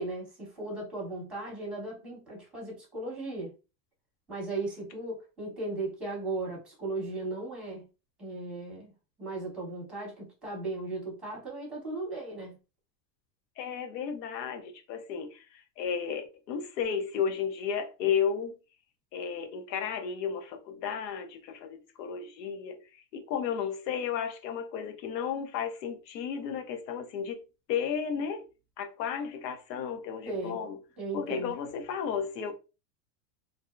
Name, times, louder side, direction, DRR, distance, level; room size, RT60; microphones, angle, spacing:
voice 1, 0.0-3.5 4.3-7.9 8.2-8.9 9.2-12.6 30.3-30.6 31.0-31.5, right 2 dB, ahead, 0.9 m, -36 dB
voice 2, 13.6-18.6 19.1-28.4 28.8-30.8 31.1-32.5, left 7 dB, 85° left, 0.8 m, -33 dB
2.6 x 2.0 x 2.4 m
supercardioid pair, 145°, 49 cm